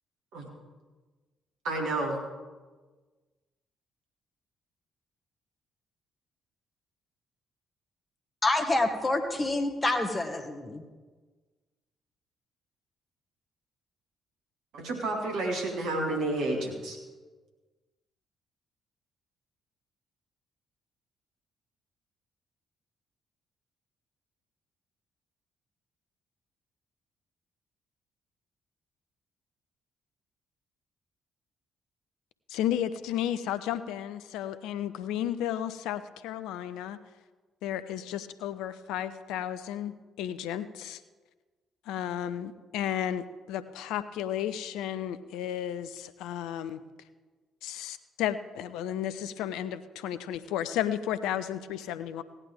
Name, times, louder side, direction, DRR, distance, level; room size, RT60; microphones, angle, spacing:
voice 1, 1.7-2.1 14.7-17.0, right 2 dB, 65° right, 1 dB, 2.1 m, -30 dB
voice 2, 8.4-10.8, left 2 dB, 25° left, 5 dB, 1.5 m, -27 dB
voice 3, 32.5-37.0 37.6-41.0 41.9-46.8 47.6-52.2, left 10 dB, 70° left, 13 dB, 0.5 m, -33 dB
16.5 x 11.0 x 3.6 m, 1.3 s
figure-of-eight pair, 45°, 0 cm